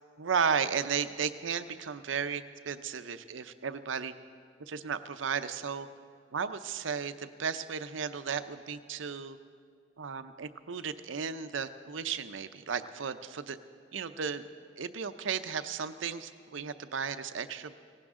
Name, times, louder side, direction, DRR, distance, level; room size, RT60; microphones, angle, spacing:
voice 1, 0.2-4.1 4.7-5.9 6.3-9.4 10.0-13.6 13.9-14.5 14.8-17.7, right 6 dB, 85° right, 11 dB, 0.6 m, -34 dB
17.0 x 16.5 x 3.7 m, 2.1 s
head